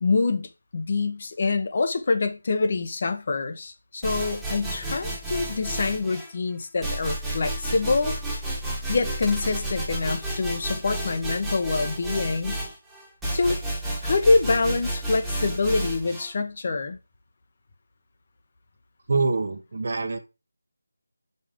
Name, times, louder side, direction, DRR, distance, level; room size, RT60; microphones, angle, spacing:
voice 1, 0.0-8.1 8.9-12.6 13.3-13.6 14.0-17.0, left 3 dB, 40° left, 1.2 m, -25 dB
sound 1, 4.0-6.3 6.8-16.3, right 1 dB, 5° right, 1.5 m, -31 dB
voice 2, 19.1-20.2, right 3 dB, 50° right, 1.2 m, -25 dB
5.5 x 5.2 x 5.2 m
figure-of-eight pair, 170°, 0 cm